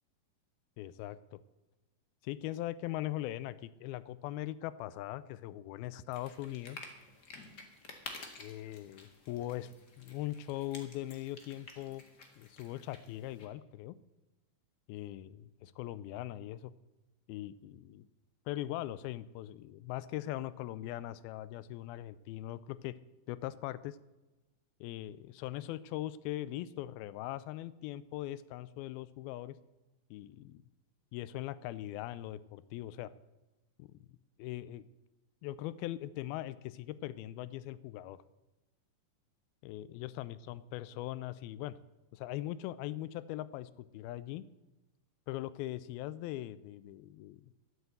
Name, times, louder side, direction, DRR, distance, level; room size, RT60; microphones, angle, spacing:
voice 1, 0.8-1.4 2.2-6.8 8.4-9.7 10.0-12.0 12.4-14.0 14.9-16.7 17.3-18.1 18.5-23.0 23.3-24.0 24.8-29.6 30.1-30.6 31.1-33.1 33.8-33.9 34.4-34.9 35.4-38.2 39.6-41.8 42.1-44.5 45.3-47.4, left 14 dB, 85° left, 17 dB, 2.4 m, -40 dB
sound 1, 6.1-13.5, left 3 dB, 50° left, 1.2 m, -51 dB
12.5 x 8.2 x 7.9 m, 1.1 s
omnidirectional pair, 4.4 m